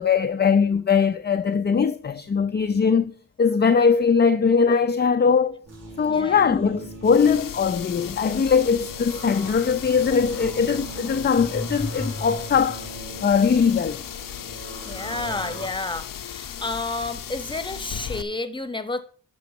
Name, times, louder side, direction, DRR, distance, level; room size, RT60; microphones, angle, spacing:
voice 1, 0.0-5.6 6.0-12.9 13.2-14.0, left 6 dB, 30° left, 0.5 m, -21 dB
sound 1, 5.7-15.7, right 1 dB, 50° right, 4.6 m, -38 dB
sound 2, 7.0-18.2, left 9 dB, 80° left, 0.8 m, -36 dB
voice 2, 14.8-19.0, left 2 dB, 15° left, 1.1 m, -31 dB
11.0 x 3.9 x 7.2 m
cardioid pair, 85°, 33 cm